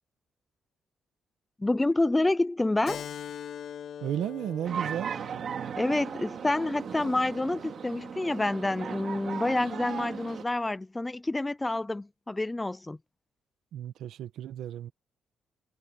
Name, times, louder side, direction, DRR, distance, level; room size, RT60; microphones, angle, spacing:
voice 1, 1.6-3.1 5.8-13.0, left 2 dB, 10° left, 0.4 m, -28 dB
Keyboard (musical), 2.9-8.0, left 9 dB, 55° left, 2.4 m, -43 dB
voice 2, 4.0-5.1 13.7-14.9, right 10 dB, 80° right, 1.6 m, -33 dB
sound 1, 4.6-10.4, right 7 dB, 50° right, 2.5 m, -37 dB
cardioid pair, 150°, 0 cm